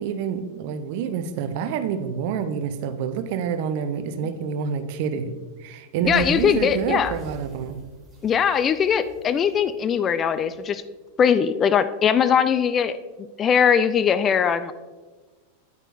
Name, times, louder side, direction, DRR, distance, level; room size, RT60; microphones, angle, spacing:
voice 1, 0.0-5.3 5.6-7.8, right 7 dB, 50° right, 11 dB, 0.6 m, -27 dB
voice 2, 6.0-7.1 8.2-10.8 11.2-13.0 13.4-14.7, left 7 dB, 25° left, 12 dB, 0.3 m, -20 dB
sound 1, 6.0-10.4, left 1 dB, 10° right, 2.8 m, -41 dB
9.5 x 8.9 x 2.5 m, 1.3 s
figure-of-eight pair, 90°, 0 cm